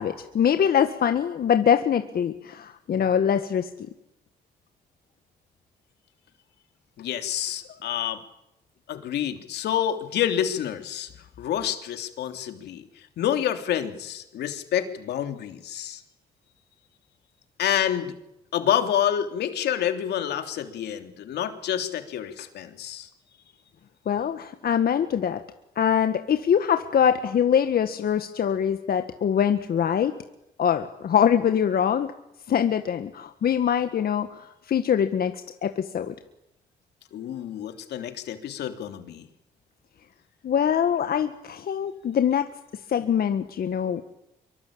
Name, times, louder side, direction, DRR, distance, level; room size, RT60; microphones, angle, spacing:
voice 1, 0.0-3.9 24.1-25.4 25.8-30.2 30.6-32.1 32.5-34.4 34.7-35.3 35.6-36.1 40.4-42.5 42.9-44.0, left 8 dB, 65° left, 8 dB, 1.8 m, -23 dB
voice 2, 7.0-8.2 8.9-11.1 11.4-12.8 13.2-16.0 17.6-18.1 18.5-23.1 37.1-39.3, left 10 dB, 85° left, 7 dB, 3.2 m, -28 dB
25.5 x 24.0 x 8.8 m, 0.84 s
supercardioid pair, 65°, 17 cm